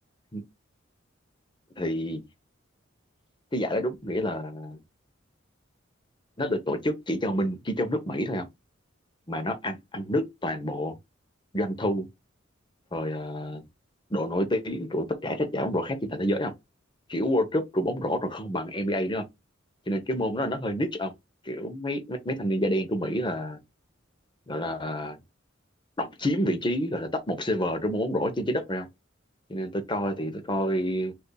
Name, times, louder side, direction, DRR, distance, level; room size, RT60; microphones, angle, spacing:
voice 1, 1.8-2.2 3.5-4.8 6.4-8.5 9.3-11.0 11.5-12.1 12.9-13.6 14.1-16.5 17.1-19.3 19.9-21.1 21.4-23.6 24.5-25.2 26.0-28.9 29.5-31.1, equal, 25° left, 0.8 m, -28 dB
7.9 x 2.7 x 2.2 m
head